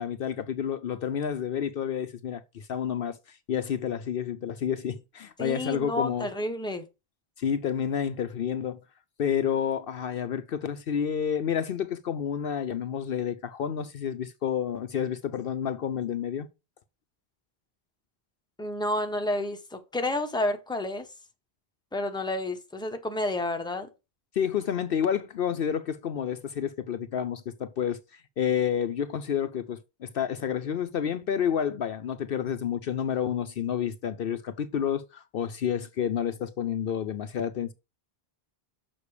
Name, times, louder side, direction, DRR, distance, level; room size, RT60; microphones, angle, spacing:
voice 1, 0.0-6.3 7.4-8.8 9.2-16.5 24.3-37.7, left 8 dB, 65° left, 0.8 m, -30 dB
voice 2, 5.4-6.9 18.6-21.1 21.9-23.9, left 1 dB, 5° left, 0.9 m, -30 dB
6.8 x 5.9 x 4.9 m
omnidirectional pair, 1.1 m